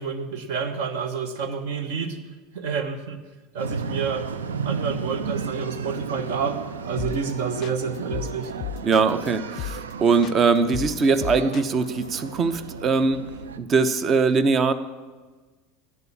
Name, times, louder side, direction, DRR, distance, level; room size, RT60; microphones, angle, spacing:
voice 1, 0.0-2.2 2.5-3.2 3.5-8.5, right 5 dB, 60° right, 9 dB, 1.2 m, -29 dB
sound 1, 3.6-13.6, right 6 dB, 75° right, 0.5 m, -34 dB
sound 2, 7.0-7.3 7.6-9.3 9.6-9.9 10.2-12.1, left 12 dB, 45° left, 0.4 m, -34 dB
voice 2, 8.8-13.2 13.6-14.7, right 4 dB, 35° right, 12 dB, 0.8 m, -21 dB
11.0 x 8.7 x 8.5 m, 1.3 s
figure-of-eight pair, 75°, 0 cm